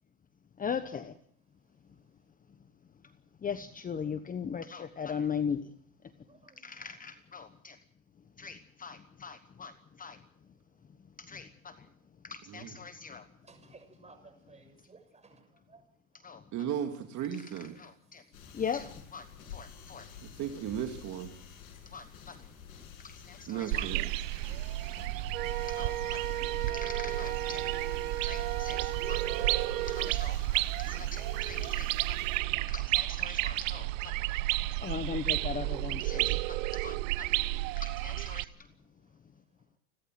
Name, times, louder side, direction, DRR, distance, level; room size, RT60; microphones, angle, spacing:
voice 1, 0.6-1.1 2.5-2.6 3.0-3.1 3.4-5.7 6.6-7.8 8.4-10.2 11.2-11.9 12.2-13.3 16.1-16.4 17.4-17.5 17.8-18.2 18.5-20.1 21.8-22.5 23.3-23.9 25.1-25.3 25.7-27.7 28.2-29.4 29.9-34.3 34.7-37.4 37.8-38.7, left 6 dB, 20° left, 11 dB, 1.1 m, -40 dB
voice 2, 6.2-6.6 13.4-15.8, right 3 dB, 15° right, 6 dB, 6.7 m, -57 dB
voice 3, 16.5-17.7 20.2-21.3 23.5-24.1, right 9 dB, 40° right, 5 dB, 2.7 m, -36 dB
sound 1, 18.3-32.4, left 7 dB, 75° left, 6.9 m, -50 dB
sound 2, 23.7-38.4, right 19 dB, 65° right, 1.0 m, -32 dB
Wind instrument woodwind instrument, 25.3-30.2, right 12 dB, 85° right, 1.7 m, -36 dB
29.5 x 12.5 x 7.7 m, 0.63 s
hypercardioid pair, 105°, 42 cm